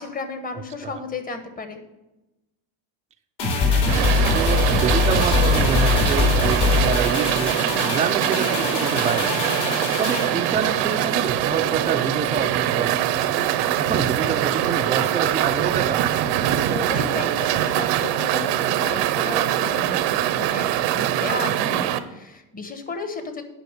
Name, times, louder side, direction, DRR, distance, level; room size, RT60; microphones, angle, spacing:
voice 1, 0.0-1.8 16.6-23.4, left 4 dB, 20° left, 7 dB, 1.2 m, -34 dB
sound 1, 3.4-12.0 12.3-12.4, left 4 dB, 70° left, 3.8 m, -23 dB
voice 2, 3.6-3.9 4.3-7.5 7.9-9.5 10.0-13.1 13.8-16.0, right 6 dB, 15° right, 4 dB, 0.5 m, -27 dB
sound 2, 3.9-22.0, right 12 dB, 80° right, 0.9 m, -23 dB
9.9 x 5.7 x 6.6 m, 1.0 s
cardioid pair, 140°, 41 cm